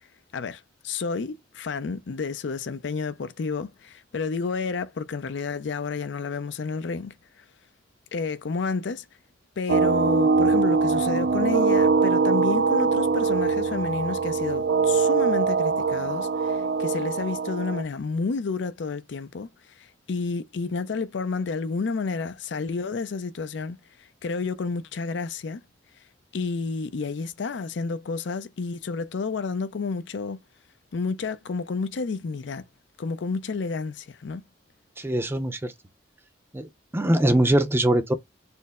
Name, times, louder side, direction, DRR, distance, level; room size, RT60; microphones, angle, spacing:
voice 1, 0.3-7.4 8.1-9.1 9.6-19.5 19.8-23.8 24.2-25.6 26.3-30.4 30.9-32.6 33.0-34.4, left 4 dB, 70° left, 0.5 m, -30 dB
sound 1, 9.7-17.8, right 4 dB, 85° right, 0.6 m, -22 dB
voice 2, 35.0-35.7 36.5-36.6 36.9-38.1, right 1 dB, 15° right, 0.5 m, -22 dB
4.4 x 2.0 x 3.6 m
head